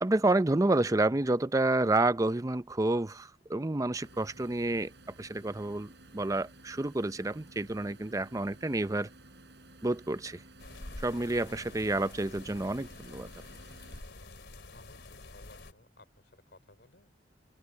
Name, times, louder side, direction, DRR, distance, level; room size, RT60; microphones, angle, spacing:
voice 1, 0.0-4.9 5.2-9.1 9.8-10.4 11.0-13.3, right 2 dB, 20° right, 0.6 m, -29 dB
sound 1, 4.0-14.0, right 2 dB, 75° right, 6.5 m, -55 dB
sound 2, 10.6-15.7, left 2 dB, 85° left, 3.1 m, -47 dB
voice 2, 14.7-17.1, left 2 dB, 70° left, 5.6 m, -58 dB
head